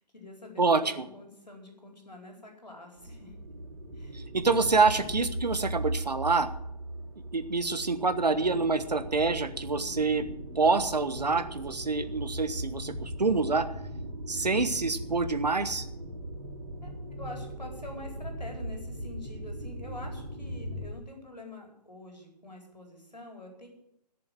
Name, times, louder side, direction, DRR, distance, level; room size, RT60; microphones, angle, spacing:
voice 1, 0.0-3.3 3.9-4.2 4.5-4.7 16.8-16.9 17.2-23.7, left 2 dB, 80° left, 2 dB, 4.5 m, -46 dB
sound 1, 3.0-20.9, right 1 dB, 55° right, 2.6 m, -39 dB
voice 2, 4.1-6.5 7.3-10.3 10.5-13.6 14.3-15.8, right 4 dB, 75° right, 10 dB, 1.4 m, -26 dB
14.0 x 7.0 x 9.4 m, 0.79 s
figure-of-eight pair, 135°, 21 cm